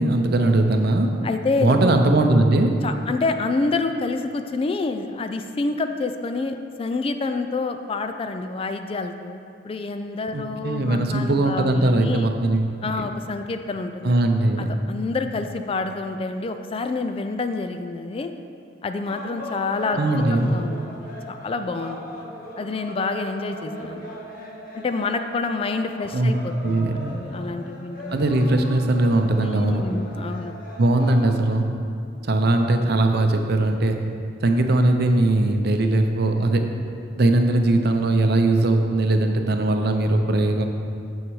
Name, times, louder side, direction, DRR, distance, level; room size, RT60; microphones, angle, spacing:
voice 1, 0.0-1.1 1.6-2.7 10.3-12.7 14.0-14.7 20.0-20.6 26.1-26.3 26.6-27.1 28.1-29.8 30.8-31.7 32.2-34.0 34.4-36.6 37.2-40.6, right 2 dB, 60° right, 5 dB, 0.6 m, -20 dB
voice 2, 1.2-2.0 2.8-9.4 9.6-12.3 12.8-14.1 14.6-18.3 18.8-22.3 22.6-24.2 24.7-28.2 29.4-30.5, left 3 dB, 30° left, 7 dB, 0.3 m, -28 dB
sound 1, 19.0-31.3, equal, 50° left, 1.3 m, -38 dB
7.3 x 6.1 x 4.7 m, 2.4 s
head